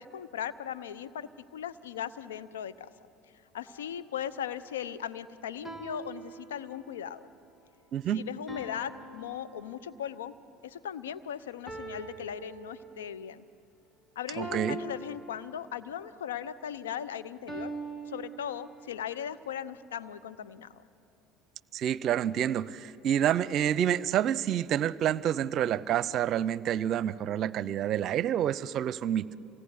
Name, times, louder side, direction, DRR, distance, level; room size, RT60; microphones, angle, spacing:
voice 1, 0.0-2.9 3.5-7.3 8.1-10.3 10.6-13.5 14.2-17.7 18.1-20.8, left 9 dB, 90° left, 13 dB, 0.8 m, -38 dB
sound 1, 3.6-4.1 5.6-7.1 8.5-10.3 11.7-13.3 14.4-16.0 17.5-19.1, right 3 dB, 20° left, 3.2 m, -44 dB
voice 2, 7.9-8.2 14.4-14.8 21.7-29.3, right 10 dB, 55° right, 18 dB, 0.7 m, -28 dB
27.0 x 18.0 x 9.6 m, 2.8 s
hypercardioid pair, 80°, 0 cm